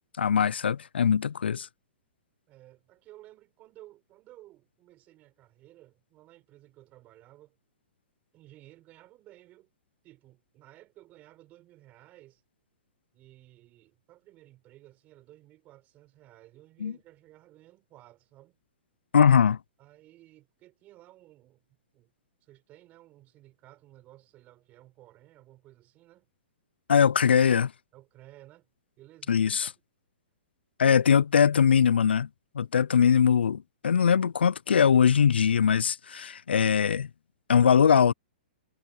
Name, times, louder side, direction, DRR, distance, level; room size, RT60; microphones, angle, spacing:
voice 1, 0.2-1.7 16.8-16.9 19.1-19.6 26.9-27.7 29.3-29.7 30.8-32.3 32.6-37.1 37.5-38.1, left 7 dB, 90° left, 0.4 m, -21 dB
voice 2, 2.5-7.6 8.3-9.7 10.0-12.4 13.1-18.6 19.8-21.6 21.9-22.1 22.4-26.3 27.9-28.7 29.0-29.7 30.8-31.2, right 16 dB, 30° right, 5.1 m, -55 dB
hypercardioid pair, 135°, 6 cm